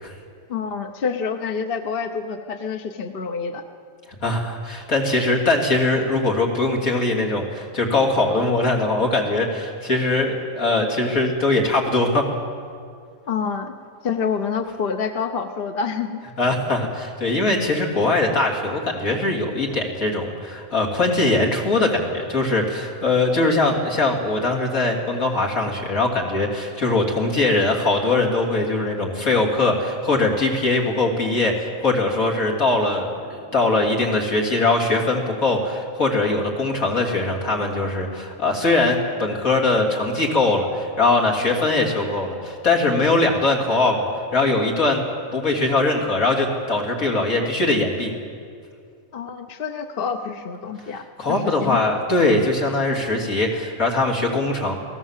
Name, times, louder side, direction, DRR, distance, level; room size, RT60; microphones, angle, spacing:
voice 1, 0.5-3.6 13.3-13.7 14.0-16.2 16.8-16.9 49.1-51.8, left 6 dB, 45° left, 6 dB, 1.1 m, -27 dB
voice 2, 4.2-12.3 16.4-44.0 44.3-45.0 45.3-48.1 51.2-54.7, left 2 dB, 80° left, -1 dB, 3.5 m, -21 dB
28.0 x 18.5 x 7.4 m, 2.3 s
omnidirectional pair, 1.4 m